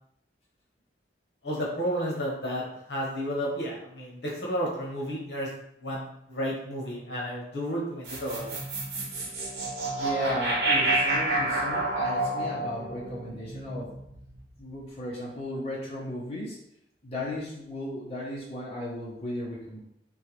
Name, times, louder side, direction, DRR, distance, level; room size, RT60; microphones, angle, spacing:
voice 1, 1.4-5.5 5.8-8.5, equal, 70° left, -4 dB, 1.3 m, -32 dB
sound 1, 8.0-14.4, right 2 dB, 65° right, 1.1 m, -29 dB
voice 2, 9.9-13.9 14.6-16.6 17.0-19.8, left 1 dB, 35° left, -6 dB, 1.2 m, -35 dB
4.5 x 3.2 x 3.3 m, 0.77 s
head